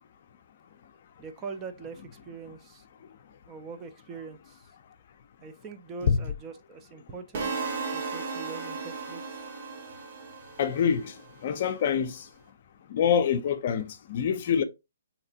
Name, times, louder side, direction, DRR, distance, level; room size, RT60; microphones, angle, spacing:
voice 1, 1.2-2.8 3.5-4.7 5.4-9.2, right 5 dB, 20° right, 0.4 m, -42 dB
sound 1, 7.3-11.4, right 4 dB, 55° right, 0.9 m, -35 dB
voice 2, 10.6-11.1 11.4-12.3 12.9-14.6, left 7 dB, 45° left, 0.5 m, -25 dB
3.2 x 2.9 x 2.7 m
hypercardioid pair, 145°, 0 cm